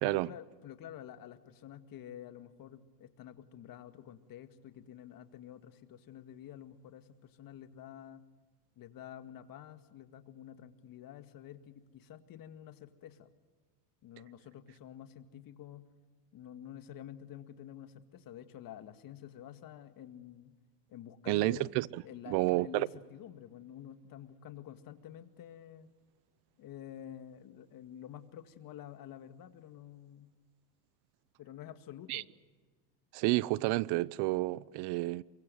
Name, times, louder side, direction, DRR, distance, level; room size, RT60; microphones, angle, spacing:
voice 1, 0.0-8.2 8.8-13.3 14.0-15.9 16.3-20.5 20.9-21.7 22.0-25.9 26.6-30.3 31.4-32.3, left 10 dB, 45° left, 2.1 m, -49 dB
voice 2, 21.3-22.9 32.1-32.2 33.1-35.2, right 20 dB, 55° right, 0.8 m, -30 dB
24.0 x 22.5 x 7.7 m
supercardioid pair, 110°, 48 cm